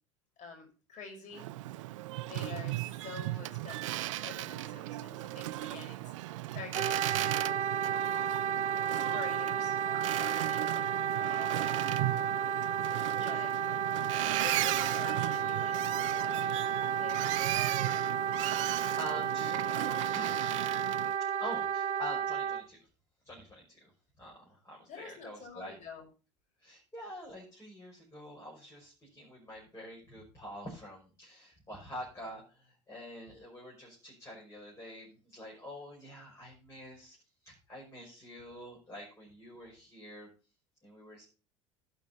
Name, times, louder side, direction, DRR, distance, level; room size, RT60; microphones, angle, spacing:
voice 1, 0.4-1.5 2.2-7.7 9.0-9.7 10.1-10.9 12.9-13.5 14.3-16.6 17.0-17.3 19.5-20.0 24.9-26.0, left 5 dB, 45° left, 3 dB, 5.0 m, -48 dB
Boat Water vehicle, 1.3-21.1, right 17 dB, 70° right, 0.4 m, -36 dB
Wind instrument woodwind instrument, 6.7-22.6, right 8 dB, 45° right, 1.1 m, -32 dB
voice 2, 18.4-20.4 21.4-22.8 23.2-23.9 24.2-25.8 26.6-37.2 37.4-40.3 40.8-41.2, equal, 15° left, -3 dB, 6.0 m, -46 dB
11.5 x 6.5 x 5.7 m, 0.35 s
hypercardioid pair, 70°, 17 cm